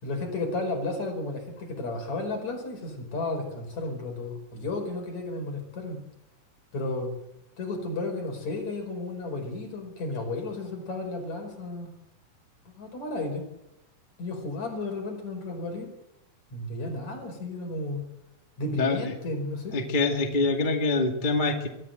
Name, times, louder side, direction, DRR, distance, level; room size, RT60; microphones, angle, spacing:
voice 1, 0.0-6.0 6.7-7.1 7.6-11.9 12.7-13.4 14.2-15.9 16.5-18.0 18.6-19.8, left 2 dB, 55° left, 3 dB, 6.4 m, -33 dB
voice 2, 18.8-19.1 19.7-21.7, left 3 dB, 20° left, 3 dB, 1.7 m, -25 dB
23.0 x 14.5 x 9.2 m, 0.88 s
omnidirectional pair, 4.0 m